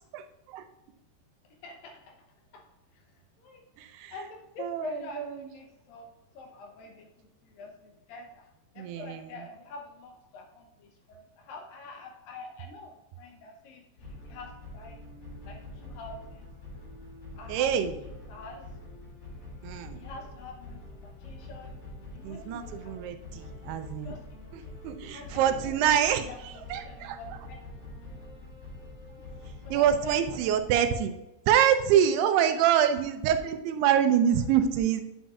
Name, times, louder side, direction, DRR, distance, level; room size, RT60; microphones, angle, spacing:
voice 1, 0.1-0.7 3.8-4.1 4.6-5.5 8.8-9.3 17.5-17.9 19.6-20.0 22.2-24.1 24.5-27.2 29.7-31.1 31.5-35.0, right 9 dB, 85° right, 8 dB, 2.6 m, -26 dB
voice 2, 1.5-2.2 2.5-2.6 2.9-3.6 4.1-8.5 8.7-15.0 15.5-16.5 17.3-17.9 18.3-18.7 19.9-21.8 22.1-23.6 24.0-24.8 25.1-25.8 26.2-27.6 29.6-30.6, left 3 dB, 75° left, 2 dB, 2.3 m, -46 dB
sound 1, 14.0-30.6, left 2 dB, 55° left, 4.4 m, -45 dB
9.1 x 7.7 x 2.4 m, 0.96 s
omnidirectional pair, 4.6 m